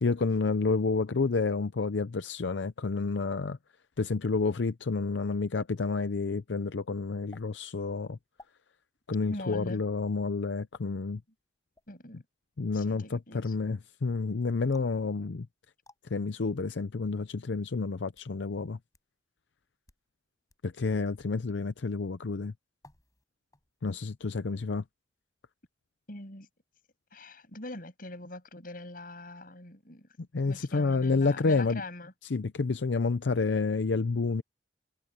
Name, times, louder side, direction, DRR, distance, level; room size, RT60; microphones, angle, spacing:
voice 1, 0.0-3.6 4.0-8.2 9.1-11.2 12.6-15.5 16.1-18.8 20.6-22.5 23.8-24.8 30.3-31.8 32.2-34.4, left 4 dB, 80° left, 0.6 m, -29 dB
sound 1, 7.3-7.4 8.3-8.6 9.5-9.7 10.7-10.9 11.7-12.0 14.7-15.0 15.8-16.0 16.9-17.0 17.9-18.3 18.9-19.0 19.7-20.0 20.5-20.6 21.2-21.3 22.8-23.2 23.5-23.9, left 2 dB, 20° left, 7.7 m, -57 dB
voice 2, 9.3-9.8 11.9-12.2 12.7-13.7 26.1-26.5 27.1-30.1 30.4-32.1, left 2 dB, 50° left, 7.9 m, -43 dB
head